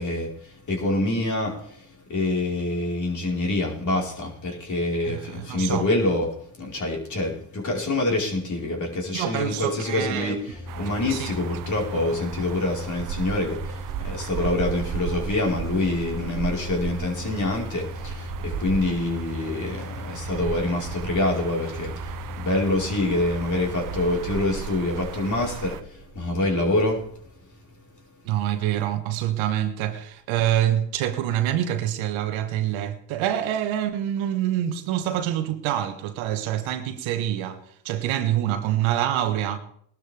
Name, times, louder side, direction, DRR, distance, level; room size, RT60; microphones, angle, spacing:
voice 1, 0.0-6.3 6.6-27.0, left 2 dB, 35° left, 4.5 m, -26 dB
voice 2, 5.0-5.9 9.1-10.4 11.1-11.3 28.2-37.6 37.8-39.6, right 11 dB, 70° right, 1.5 m, -26 dB
sound 1, 10.5-28.2, left 3 dB, ahead, 4.9 m, -39 dB
sound 2, 10.7-25.8, right 9 dB, 40° right, 0.7 m, -35 dB
20.5 x 12.0 x 3.5 m
hypercardioid pair, 70°, 49 cm